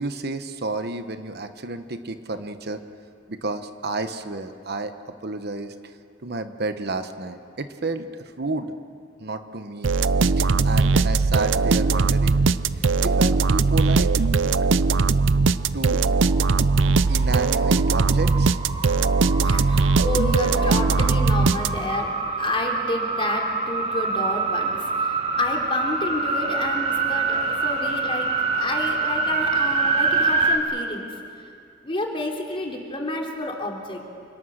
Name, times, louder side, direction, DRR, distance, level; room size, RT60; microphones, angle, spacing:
voice 1, 0.0-2.8 3.3-4.9 5.2-5.9 6.2-8.7 9.2-9.9 10.3-12.4 12.7-14.1 15.7-16.0 17.1-18.5, right 2 dB, 55° right, 8 dB, 1.1 m, -31 dB
sound 1, 9.8-22.1, right 4 dB, 75° right, 0.6 m, -20 dB
sound 2, 16.1-30.6, right 3 dB, 35° right, 2.5 m, -26 dB
voice 2, 19.4-22.1 22.4-31.1 31.8-34.0, left 2 dB, 30° left, 1 dB, 3.4 m, -29 dB
28.0 x 25.0 x 6.5 m, 2.4 s
head